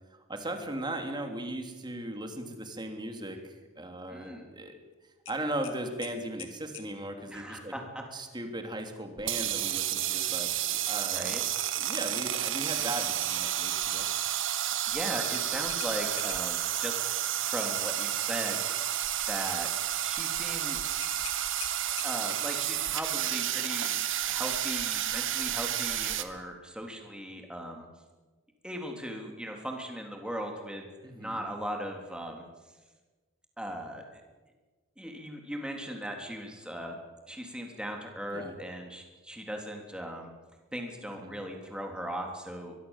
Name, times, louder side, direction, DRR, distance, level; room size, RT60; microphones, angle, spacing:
voice 1, 0.1-4.7 5.3-7.7 8.1-11.4 11.7-14.2 31.0-31.4 38.3-38.5 41.2-41.4, right 1 dB, 20° right, 5 dB, 3.1 m, -38 dB
voice 2, 4.1-4.5 7.3-8.0 11.1-11.4 14.6-17.1 17.4-19.0 19.3-19.7 20.0-21.0 21.9-23.9 24.3-27.9 28.6-30.9 31.1-32.4 33.6-34.2 35.0-37.0 37.3-40.3 40.7-42.8, equal, 5° right, 2 dB, 3.5 m, -38 dB
sound 1, 5.3-6.9 9.5-9.8 10.2-10.3 15.2-16.6 21.0-22.4, left 9 dB, 65° left, 2.7 m, -45 dB
sound 2, 9.2-26.2, right 11 dB, 60° right, 1.5 m, -31 dB
23.0 x 22.5 x 7.4 m, 1.3 s
head